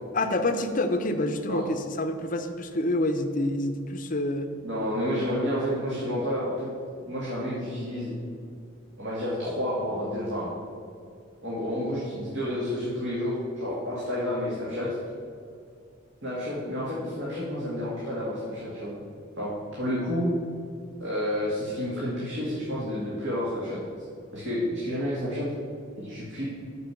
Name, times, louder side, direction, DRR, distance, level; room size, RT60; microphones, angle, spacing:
voice 1, 0.1-4.5, left 1 dB, 40° left, 8 dB, 0.6 m, -27 dB
voice 2, 4.6-6.7 7.1-8.1 9.0-10.5 11.4-14.9 16.2-18.9 19.4-19.5 19.8-20.3 21.0-23.8 24.3-25.5 26.0-26.4, equal, 60° right, -7 dB, 2.1 m, -30 dB
6.8 x 6.3 x 7.6 m, 2.3 s
head